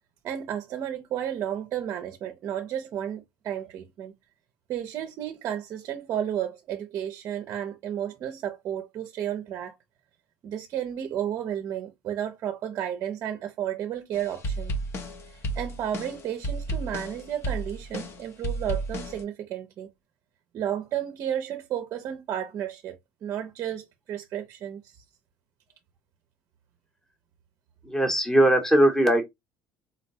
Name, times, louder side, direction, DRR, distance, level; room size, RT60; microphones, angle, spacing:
voice 1, 0.2-4.1 4.7-9.8 10.4-14.7 15.3-19.9 20.5-25.0, right 10 dB, 40° right, 0.5 m, -32 dB
sound 1, 14.1-19.2, right 1 dB, 35° left, 0.6 m, -32 dB
voice 2, 27.8-29.2, right 1 dB, 5° left, 0.8 m, -20 dB
3.9 x 2.1 x 2.7 m
cardioid pair, 150°, 8 cm